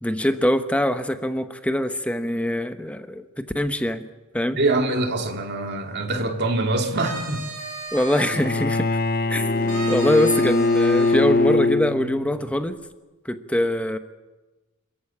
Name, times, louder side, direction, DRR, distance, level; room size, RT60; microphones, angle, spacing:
voice 1, 0.0-4.1 4.3-4.6 7.9-8.9 9.3-9.4 9.9-12.8 13.2-14.0, left 1 dB, 5° left, 8 dB, 1.0 m, -23 dB
voice 2, 4.6-7.4, right 2 dB, 50° right, 4 dB, 2.5 m, -24 dB
sound 1, 6.8-8.4 9.7-11.2, right 1 dB, 85° right, 5.1 m, -34 dB
Bowed string instrument, 8.3-12.4, left 2 dB, 45° left, 0.9 m, -22 dB
26.5 x 14.0 x 8.6 m, 1.1 s
head